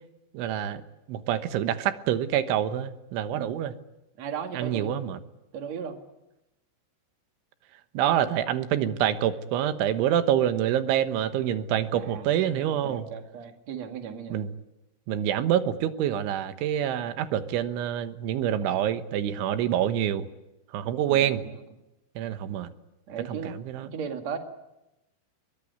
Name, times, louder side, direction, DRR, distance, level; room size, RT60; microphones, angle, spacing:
voice 1, 0.3-0.8 1.1-3.7 4.5-5.2 7.9-13.1 14.3-14.5 15.1-20.3 20.7-21.4 22.2-22.7 23.3-23.9, right 10 dB, 75° right, 9 dB, 3.5 m, -26 dB
voice 2, 4.2-4.9 5.5-6.0 11.9-12.3 12.8-14.4 21.0-21.6 23.1-23.5 23.8-24.4, right 7 dB, 45° right, 4 dB, 2.6 m, -36 dB
23.0 x 21.0 x 9.5 m, 0.93 s
omnidirectional pair, 5.6 m